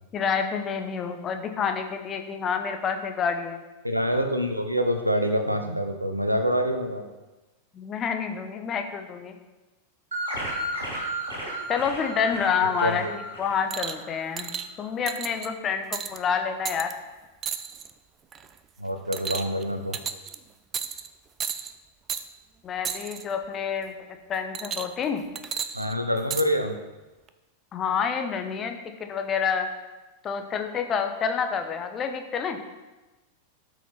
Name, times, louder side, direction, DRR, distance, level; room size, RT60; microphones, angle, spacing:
voice 1, 0.1-3.6 7.7-9.4 11.7-13.0 13.4-14.5 14.8-16.9 22.6-23.9 24.3-25.2 27.7-29.7 30.2-32.6, left 6 dB, 25° left, 6 dB, 1.1 m, -28 dB
voice 2, 3.8-7.0 12.8-13.1 18.8-20.0 25.7-26.7, equal, 90° right, 6 dB, 0.9 m, -26 dB
sound 1, 10.1-14.4, right 1 dB, 70° right, 3.6 m, -34 dB
sound 2, 13.7-14.0 14.4-14.7 15.1-15.5 15.9-16.2 16.7-16.9 17.4-17.9 18.3-18.6 19.1-19.6 19.9-20.4 20.7-21.1 21.4-21.7 22.1-22.2 22.8-23.2 24.5-25.0 25.4-26.5 27.3-27.4, right 7 dB, 25° right, 0.5 m, -33 dB
12.5 x 6.2 x 4.3 m, 1.1 s
figure-of-eight pair, 90°, 0 cm